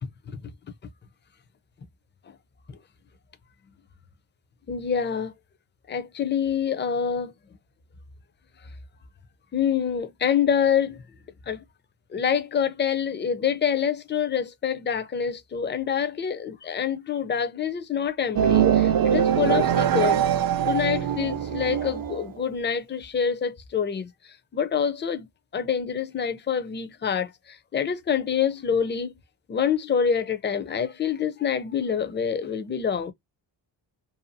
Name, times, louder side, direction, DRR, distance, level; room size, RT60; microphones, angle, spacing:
voice 1, 4.7-5.3 5.9-7.3 9.5-11.0 11.5-11.6 12.1-20.2 20.7-29.1 29.5-33.1, left 7 dB, 25° left, 0.5 m, -26 dB
sound 1, 18.4-22.3, right 9 dB, 50° right, 0.5 m, -22 dB
2.7 x 2.3 x 2.6 m
cardioid pair, 85°, 47 cm